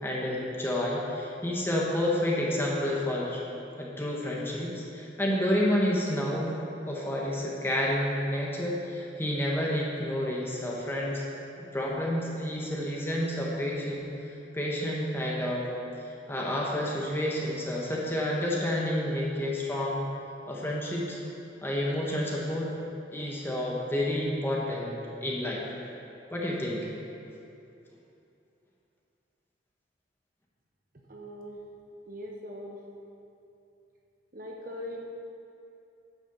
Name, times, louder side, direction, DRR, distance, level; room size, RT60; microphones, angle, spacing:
voice 1, 0.0-3.4 3.8-6.6 6.9-11.2 11.7-15.7 16.0-20.0 20.5-21.2 21.6-22.7 23.1-25.6 26.3-26.9, left 1 dB, 10° left, -4 dB, 1.3 m, -30 dB
voice 2, 31.1-31.6 32.1-32.8 34.3-35.0, equal, 50° right, -1 dB, 1.0 m, -40 dB
9.9 x 6.1 x 6.9 m, 2.8 s
head